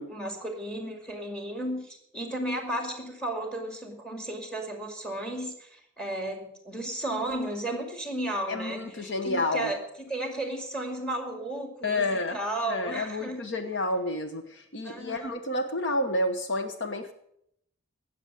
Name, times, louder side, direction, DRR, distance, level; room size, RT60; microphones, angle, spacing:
voice 1, 0.1-12.0 12.3-13.4 14.8-15.3, right 1 dB, 5° left, 3 dB, 2.3 m, -34 dB
voice 2, 8.5-9.7 11.8-12.4 12.6-17.1, left 2 dB, 60° left, 7 dB, 1.1 m, -30 dB
17.0 x 7.1 x 6.7 m, 0.73 s
head